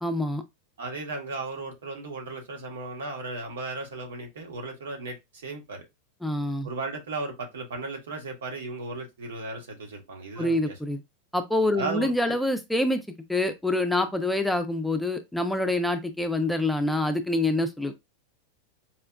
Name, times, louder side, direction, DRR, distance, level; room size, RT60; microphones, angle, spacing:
voice 1, 0.0-0.4 6.2-6.7 10.4-11.0 11.3-13.0 13.3-17.9, left 1 dB, 5° left, 0.4 m, -26 dB
voice 2, 0.8-5.9 6.6-10.7 11.7-12.4, right 3 dB, 80° right, 1.1 m, -35 dB
4.2 x 2.3 x 2.2 m
hypercardioid pair, 110°, 0 cm